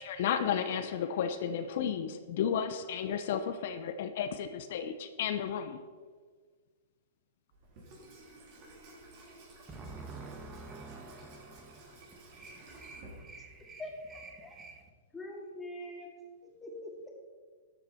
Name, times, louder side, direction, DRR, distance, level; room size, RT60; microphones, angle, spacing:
voice 1, 0.0-5.8, left 8 dB, 60° left, 9 dB, 0.7 m, -33 dB
Water tap faucet / Sink (filling or washing), 7.5-13.8, right 2 dB, 45° right, 3.6 m, -54 dB
voice 2, 9.7-12.0 12.3-13.8 14.1-14.8, right 3 dB, 20° right, 3 dB, 1.5 m, -48 dB
voice 3, 13.8-14.6 15.1-16.1 16.4-17.1, left 1 dB, 10° left, 0 dB, 2.5 m, -44 dB
12.5 x 7.7 x 4.4 m, 1.5 s
hypercardioid pair, 115°, 0 cm